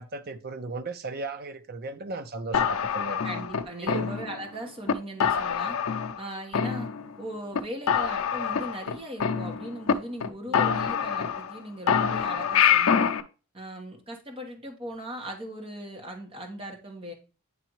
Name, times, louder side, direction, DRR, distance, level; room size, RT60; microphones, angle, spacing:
voice 1, 0.0-3.2 3.8-4.1 10.4-10.6, right 3 dB, 45° right, 0.5 m, -36 dB
sound 1, 2.5-4.5 4.9-5.0 5.2-6.2 6.5-7.2 7.5-7.6 7.9-9.9 10.2-10.3 10.5-11.6 11.9-13.2, left 7 dB, 70° left, 0.5 m, -25 dB
voice 2, 3.2-5.8 6.2-6.9 7.2-13.1 13.5-17.1, equal, 25° right, 1.3 m, -39 dB
9.1 x 3.4 x 3.0 m
head